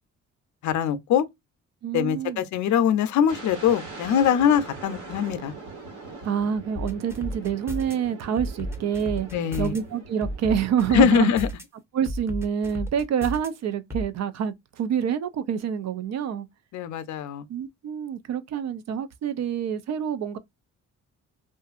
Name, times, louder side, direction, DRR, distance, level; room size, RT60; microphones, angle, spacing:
voice 1, 0.6-1.3 1.9-5.5 9.3-9.7 10.9-11.5 16.7-17.5, left 8 dB, 70° left, 0.5 m, -22 dB
voice 2, 1.8-2.4 6.2-9.3 9.6-11.3 11.9-16.5 17.5-20.4, right 8 dB, 60° right, 0.5 m, -27 dB
sound 1, 3.3-11.1, right 3 dB, 85° right, 1.6 m, -42 dB
sound 2, 6.8-7.9 8.4-9.8 10.2-11.6 12.1-13.5 13.9-14.1, equal, 10° right, 0.8 m, -32 dB
2.6 x 2.5 x 2.4 m
cardioid pair, 90°, 30 cm